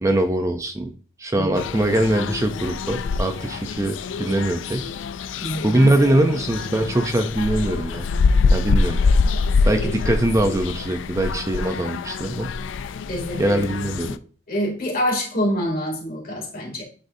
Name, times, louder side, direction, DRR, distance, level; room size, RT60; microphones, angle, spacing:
voice 1, 0.0-0.9 1.2-4.9 5.6-8.0 8.5-9.0 9.6-12.5 13.4-14.2, right 1 dB, 15° right, 7 dB, 0.5 m, -22 dB
sound 1, 1.6-14.2, left 4 dB, 85° left, 0.4 m, -24 dB
voice 2, 5.4-5.9 9.8-9.9 13.1-13.6 14.5-16.8, equal, 55° left, -2 dB, 2.5 m, -26 dB
9.5 x 3.9 x 2.7 m, 0.42 s
head